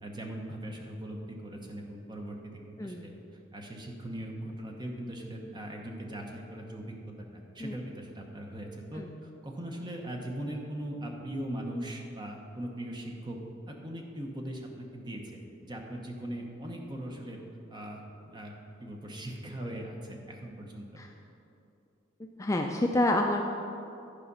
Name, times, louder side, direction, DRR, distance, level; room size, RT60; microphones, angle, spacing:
voice 1, 0.0-2.4 2.7-3.1 3.5-7.0 7.3-13.4 13.7-17.4 17.7-18.5 18.8-21.0, right 1 dB, 20° right, 1 dB, 0.9 m, -40 dB
voice 2, 22.4-23.5, left 1 dB, 15° left, 2 dB, 0.3 m, -28 dB
11.0 x 5.0 x 5.4 m, 2.8 s
head